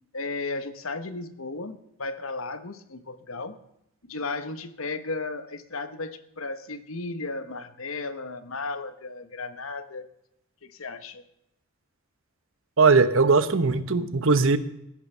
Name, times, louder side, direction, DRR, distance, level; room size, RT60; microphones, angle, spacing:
voice 1, 0.1-3.6 4.0-10.1 10.6-11.2, left 3 dB, 75° left, 11 dB, 1.1 m, -35 dB
voice 2, 12.8-14.6, right 4 dB, 65° right, 12 dB, 1.0 m, -19 dB
16.0 x 10.0 x 5.6 m, 0.83 s
head